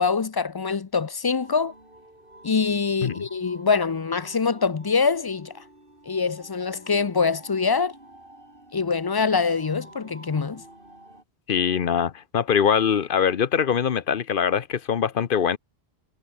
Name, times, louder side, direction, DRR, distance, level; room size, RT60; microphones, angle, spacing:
voice 1, 0.0-1.7 2.4-5.5 6.1-7.9 8.7-10.6, left 5 dB, 30° left, 0.4 m, -24 dB
sound 1, 1.4-11.2, right 1 dB, 55° right, 6.8 m, -49 dB
voice 2, 11.5-15.6, left 7 dB, 60° left, 0.9 m, -23 dB
omnidirectional pair, 1.1 m